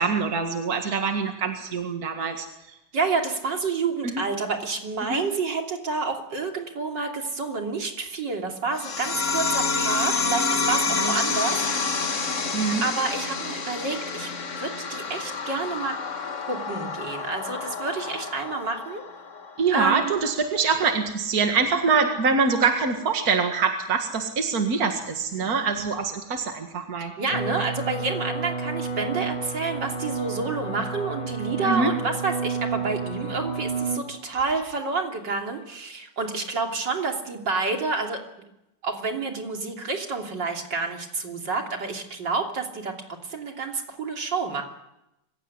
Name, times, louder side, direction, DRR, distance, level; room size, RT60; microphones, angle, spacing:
voice 1, 0.0-2.5 4.0-4.2 5.1-5.2 10.9-11.2 12.5-12.8 19.6-27.1 31.7-31.9, right 5 dB, 55° right, 4 dB, 2.4 m, -24 dB
voice 2, 2.9-12.0 12.8-14.3 14.6-15.9 16.5-19.0 19.7-20.2 27.0-38.2 38.8-42.9 43.2-44.6, right 4 dB, 80° right, 2 dB, 3.6 m, -29 dB
Magical Dissipating Effect, 8.8-19.8, left 4 dB, 45° left, 1.8 m, -28 dB
sound 1, 27.3-34.0, right 4 dB, 20° left, 2.6 m, -30 dB
26.0 x 16.0 x 9.8 m, 0.90 s
omnidirectional pair, 1.9 m